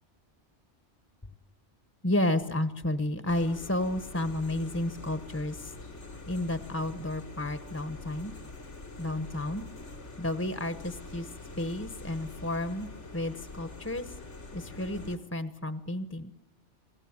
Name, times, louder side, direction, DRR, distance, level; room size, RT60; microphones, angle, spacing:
voice 1, 2.0-5.7 6.3-8.3 9.0-9.6 10.2-11.3 11.6-14.1 14.5-16.3, left 1 dB, 15° left, 11 dB, 0.9 m, -31 dB
sound 1, 3.3-15.2, left 3 dB, 85° left, 3.2 m, -45 dB
27.5 x 19.0 x 9.6 m, 0.89 s
omnidirectional pair, 1.2 m